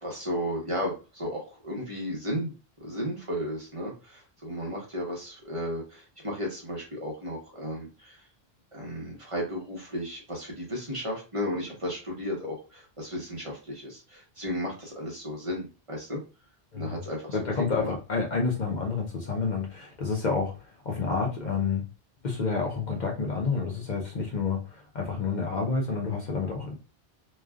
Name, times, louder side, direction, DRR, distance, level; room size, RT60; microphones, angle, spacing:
voice 1, 0.0-2.5 2.8-8.3 8.7-16.2 16.7-17.4 17.8-17.9, equal, 35° right, -2 dB, 1.0 m, -34 dB
voice 2, 17.3-20.5 20.8-21.9 22.2-26.8, left 4 dB, 50° left, 0 dB, 0.7 m, -29 dB
3.1 x 2.3 x 2.3 m, 0.32 s
omnidirectional pair, 1.0 m